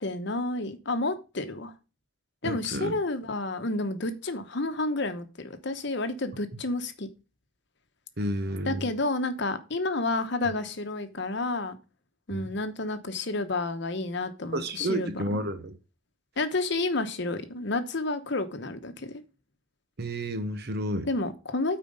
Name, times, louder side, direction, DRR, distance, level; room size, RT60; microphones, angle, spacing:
voice 1, 0.0-1.7 2.4-7.1 8.6-11.8 12.3-15.2 16.4-19.2 21.0-21.8, left 2 dB, 60° left, 0.9 m, -30 dB
voice 2, 2.4-3.0 6.5-6.6 8.2-8.9 12.3-12.6 14.5-15.8 20.0-21.1, right 1 dB, 50° right, 1.0 m, -31 dB
9.2 x 4.4 x 5.2 m
head